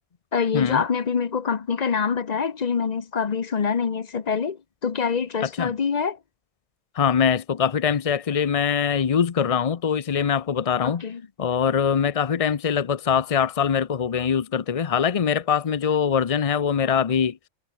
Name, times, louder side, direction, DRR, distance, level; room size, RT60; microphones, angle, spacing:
voice 1, 0.3-6.2 10.8-11.2, left 6 dB, 35° left, 0.8 m, -25 dB
voice 2, 7.0-11.0 11.4-17.4, left 7 dB, 55° left, 0.4 m, -23 dB
omnidirectional pair, 1.5 m